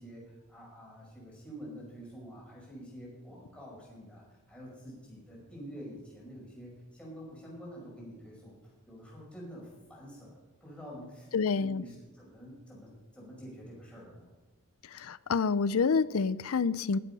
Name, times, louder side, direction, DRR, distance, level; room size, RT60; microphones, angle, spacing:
voice 1, 0.0-8.6 8.9-14.3, equal, 5° left, 5.4 m, -47 dB
voice 2, 11.3-11.8 14.9-17.0, left 5 dB, 80° left, 0.5 m, -28 dB
20.0 x 8.2 x 5.5 m
head